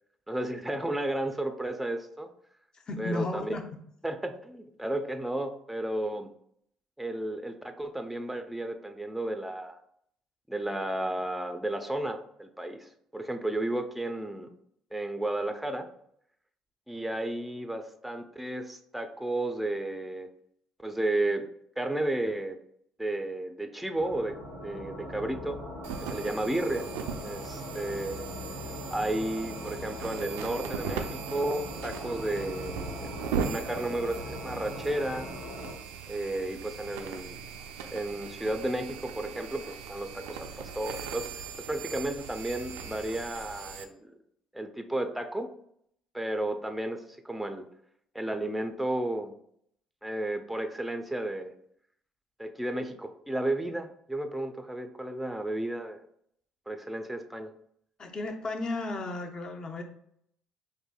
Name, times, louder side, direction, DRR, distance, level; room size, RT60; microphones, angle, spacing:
voice 1, 0.3-2.3 3.0-3.5 4.0-6.3 7.0-9.8 10.5-14.5 14.9-15.9 16.9-20.3 20.8-21.4 21.8-22.6 23.0-24.3 24.6-25.6 26.0-26.9 27.2-28.3 28.9-31.1 31.3-33.1 33.4-35.3 36.1-37.4 37.9-44.1 44.5-45.5 46.1-47.6 48.1-49.3 50.0-51.5 52.4-56.0 56.7-57.5, right 1 dB, 5° right, 6 dB, 0.4 m, -33 dB
voice 2, 2.7-3.6 58.0-59.8, left 2 dB, 40° left, 4 dB, 0.7 m, -34 dB
sound 1, 23.9-35.7, left 1 dB, 75° left, 1.4 m, -41 dB
sound 2, 25.8-43.8, right 6 dB, 85° right, 0.3 m, -39 dB
4.7 x 2.6 x 2.2 m, 0.70 s
hypercardioid pair, 60°, 2 cm